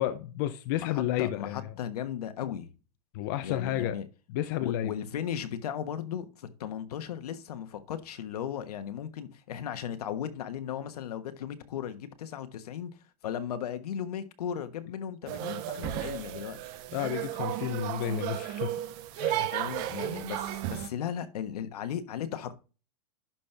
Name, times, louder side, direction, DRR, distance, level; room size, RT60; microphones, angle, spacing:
voice 1, 0.0-1.6 3.1-4.0 4.3-4.9 16.9-18.7 19.2-19.5, left 12 dB, 30° left, 0.5 m, -31 dB
voice 2, 0.8-2.7 3.4-4.1 4.6-13.0 13.2-16.6 19.5-22.5, left 9 dB, 70° left, 1.3 m, -36 dB
sound 1, 15.3-20.9, right 12 dB, 20° right, 0.5 m, -34 dB
11.5 x 4.3 x 3.3 m
supercardioid pair, 175°, 20 cm